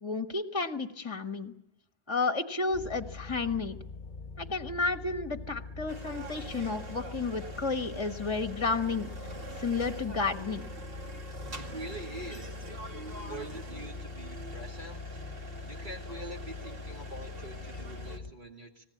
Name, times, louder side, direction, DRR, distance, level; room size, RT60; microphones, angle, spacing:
voice 1, 0.0-1.5 2.1-3.8 4.4-9.1 9.6-10.6, left 4 dB, 30° left, 7 dB, 1.3 m, -32 dB
sound 1, 2.7-18.3, left 4 dB, 50° left, 1.2 m, -43 dB
sound 2, 5.9-18.2, right 2 dB, 65° right, 2.5 m, -45 dB
voice 2, 11.6-12.8 13.3-15.2 15.4-18.8, right 1 dB, 50° right, 0 dB, 3.0 m, -45 dB
25.0 x 19.5 x 8.5 m, 0.83 s
omnidirectional pair, 1.0 m